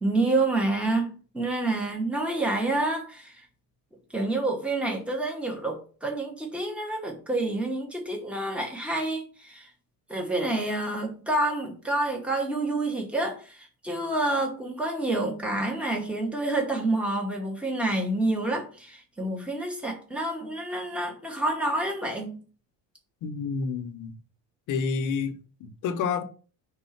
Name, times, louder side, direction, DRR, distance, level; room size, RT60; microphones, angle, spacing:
voice 1, 0.0-3.4 4.1-9.7 10.1-22.4, right 2 dB, 5° right, 1.0 m, -28 dB
voice 2, 23.2-24.1 24.7-26.2, left 5 dB, 45° left, 0.8 m, -29 dB
5.3 x 3.7 x 5.7 m
cardioid pair, 170°, 44 cm